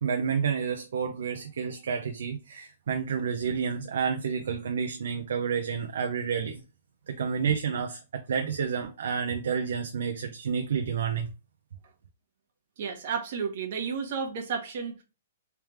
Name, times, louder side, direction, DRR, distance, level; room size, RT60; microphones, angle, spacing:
voice 1, 0.0-6.6 7.1-11.3, right 6 dB, 70° right, 0.6 m, -30 dB
voice 2, 12.8-15.0, right 6 dB, 40° right, 1.1 m, -32 dB
3.4 x 3.2 x 3.1 m
hypercardioid pair, 170°, 0 cm